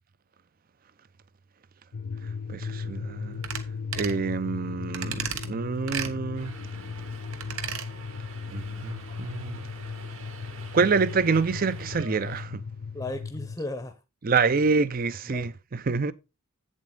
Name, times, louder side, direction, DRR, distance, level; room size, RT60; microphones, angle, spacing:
sound 1, 1.9-13.6, left 5 dB, 65° left, 0.5 m, -37 dB
voice 1, 2.5-3.4 4.0-6.5 8.5-9.6 10.7-12.6 14.2-16.1, right 4 dB, 40° right, 0.5 m, -26 dB
sound 2, 3.4-3.6 3.9-4.2 4.9-5.5 5.9-6.1 7.3-7.9 8.2-8.3, right 8 dB, 90° right, 1.1 m, -33 dB
Subway metro underground, 6.3-12.4, right 3 dB, 70° right, 1.8 m, -46 dB
voice 2, 12.9-14.0 14.5-14.8 15.2-15.5, left 2 dB, 15° left, 0.7 m, -36 dB
8.5 x 7.5 x 3.8 m
head